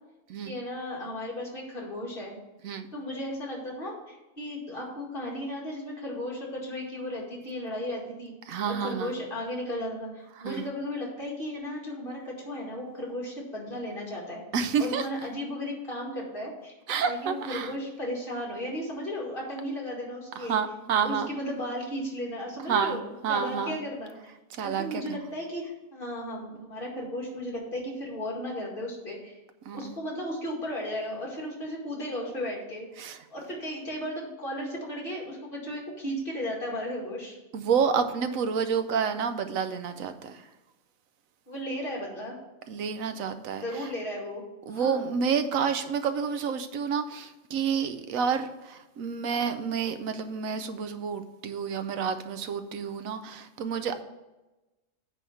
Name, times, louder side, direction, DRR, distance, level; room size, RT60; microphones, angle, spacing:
voice 1, 0.4-2.4 2.9-8.3 8.7-14.4 14.8-16.8 17.0-20.6 21.0-24.3 24.6-29.4 29.7-32.9 33.3-37.4 41.5-42.4 43.6-45.1, left 1 dB, 40° left, -2 dB, 2.2 m, -35 dB
voice 2, 8.5-9.1 10.4-10.6 14.5-15.1 16.9-17.7 20.4-21.3 22.7-23.8 24.5-25.2 29.7-29.8 33.0-33.2 37.5-40.3 42.7-43.6 44.7-54.0, right 6 dB, 80° right, 10 dB, 1.1 m, -29 dB
9.4 x 3.6 x 6.9 m, 1.0 s
omnidirectional pair, 1.4 m